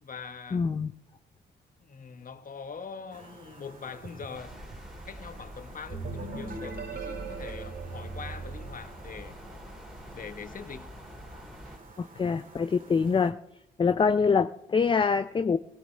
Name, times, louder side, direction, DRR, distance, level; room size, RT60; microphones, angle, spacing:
voice 1, 0.0-0.7 1.8-4.5 5.0-9.4 10.1-11.0, left 6 dB, 45° left, 1.2 m, -43 dB
voice 2, 0.5-0.9 12.0-13.4 13.8-15.6, left 5 dB, 25° left, 0.4 m, -25 dB
sound 1, 3.1-13.3, right 3 dB, 45° right, 2.3 m, -51 dB
sound 2, 4.3-11.8, equal, ahead, 2.7 m, -46 dB
sound 3, 5.9-9.6, right 4 dB, 65° right, 4.8 m, -39 dB
20.0 x 17.5 x 3.3 m
cardioid pair, 75°, 20 cm